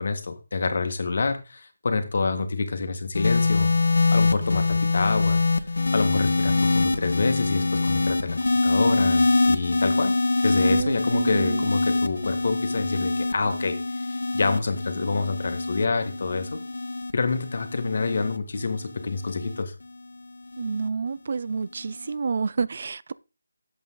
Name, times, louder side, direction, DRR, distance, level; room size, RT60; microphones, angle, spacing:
voice 1, 0.0-3.7 4.1-5.4 5.9-10.1 10.4-16.6 17.1-19.7, left 4 dB, 50° left, 1.9 m, -27 dB
sound 1, 3.1-19.6 20.5-20.9, left 3 dB, 75° left, 1.6 m, -24 dB
voice 2, 10.6-11.7 20.6-23.1, right 5 dB, 45° right, 0.5 m, -29 dB
11.0 x 7.9 x 3.9 m
figure-of-eight pair, 170°, 0 cm